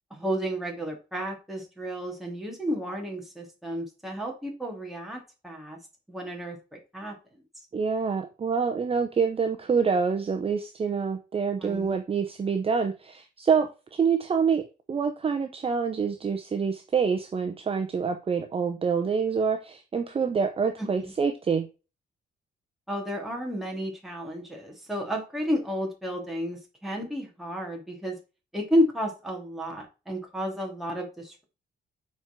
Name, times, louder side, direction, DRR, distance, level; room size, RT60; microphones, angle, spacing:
voice 1, 0.1-5.8 6.1-7.2 11.6-12.0 20.8-21.1 22.9-28.2 28.5-31.4, equal, ahead, 2.9 m, -31 dB
voice 2, 7.7-14.6 14.9-21.7, right 6 dB, 30° right, 0.8 m, -26 dB
7.1 x 4.7 x 6.0 m
wide cardioid pair, 155°, 19 cm